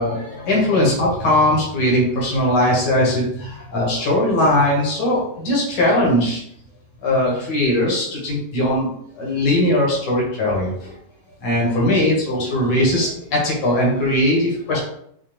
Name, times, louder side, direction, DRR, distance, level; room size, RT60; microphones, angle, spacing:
voice 1, 0.0-6.4 7.0-8.9 9.2-10.9 11.4-14.8, left 1 dB, 70° left, -4 dB, 1.8 m, -19 dB
5.0 x 2.3 x 3.0 m, 0.69 s
omnidirectional pair, 2.0 m